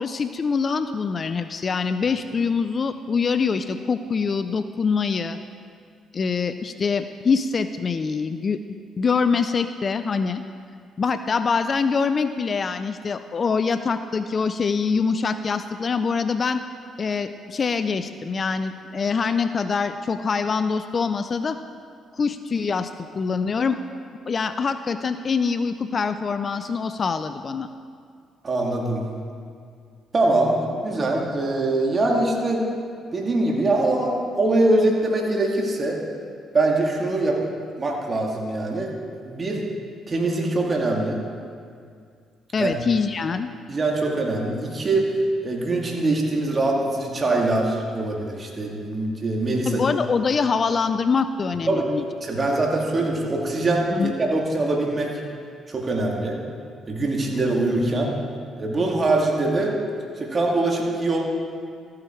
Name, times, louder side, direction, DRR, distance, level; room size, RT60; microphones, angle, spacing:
voice 1, 0.0-5.4 6.1-8.6 9.0-10.4 11.0-16.6 17.0-21.6 22.1-23.8 24.3-27.7 42.5-43.5 49.7-52.0 53.9-54.1, left 5 dB, 45° left, 10 dB, 0.4 m, -24 dB
voice 2, 28.4-29.1 30.1-32.6 33.1-36.0 36.5-37.4 37.8-38.9 39.2-39.6 40.1-41.2 42.6-42.7 43.7-45.1 45.4-49.8 51.7-51.9 52.2-55.1 55.7-56.4 56.9-58.1 58.6-59.7 60.2-61.2, right 2 dB, 40° right, -1 dB, 2.2 m, -23 dB
13.5 x 8.6 x 4.5 m, 2.2 s
supercardioid pair, 60°, 0 cm